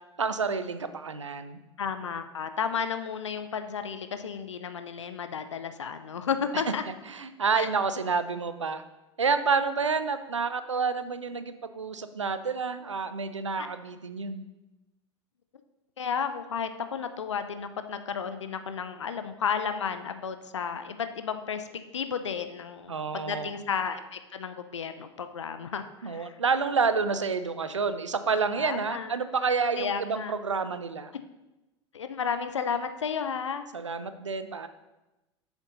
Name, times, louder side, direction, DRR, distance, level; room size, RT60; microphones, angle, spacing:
voice 1, 0.2-1.6 7.1-8.8 9.2-14.4 22.9-23.5 26.0-31.1 33.7-34.7, right 5 dB, 85° right, 11 dB, 0.5 m, -29 dB
voice 2, 1.8-6.8 7.6-7.7 13.6-13.7 16.0-21.7 21.9-26.4 28.6-29.1 29.8-30.3 31.9-33.6, left 6 dB, 80° left, 10 dB, 0.6 m, -33 dB
7.5 x 7.1 x 4.0 m, 1.0 s
figure-of-eight pair, 80°, 15 cm